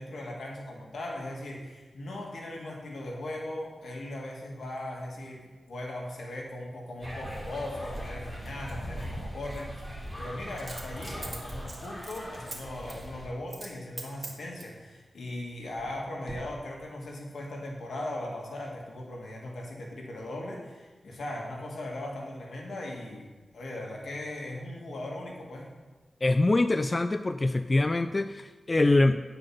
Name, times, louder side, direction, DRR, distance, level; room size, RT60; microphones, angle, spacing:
voice 1, 0.0-23.3 23.5-25.7, left 1 dB, 80° left, -1 dB, 1.8 m, -38 dB
sound 1, 7.0-13.3, equal, 5° left, 2.6 m, -40 dB
Coin (dropping), 7.9-8.1 10.6-12.6 12.9-13.1 13.5-13.7 14.0-14.8 15.4-16.0 16.3-16.4, right 3 dB, 40° right, 1.7 m, -42 dB
voice 2, 26.2-29.2, left 2 dB, 30° left, 10 dB, 0.3 m, -24 dB
9.5 x 4.9 x 5.9 m, 1.3 s
wide cardioid pair, 90°, 0 cm